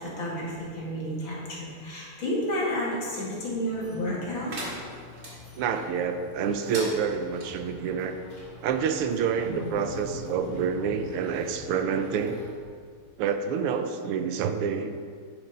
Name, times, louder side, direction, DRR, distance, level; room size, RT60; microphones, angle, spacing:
voice 1, 0.0-4.5, equal, 60° left, -5 dB, 2.8 m, -31 dB
sound 1, 3.7-12.5, left 3 dB, 15° left, 1.7 m, -48 dB
sound 2, 4.5-5.3 6.6-7.5, right 1 dB, 35° right, 2.1 m, -38 dB
voice 2, 5.6-8.2 8.6-12.4 13.2-14.9, right 6 dB, 85° right, 8 dB, 1.6 m, -28 dB
Wild animals, 8.9-13.4, equal, 45° left, 2.1 m, -42 dB
10.0 x 6.1 x 5.1 m, 2.1 s
omnidirectional pair, 2.4 m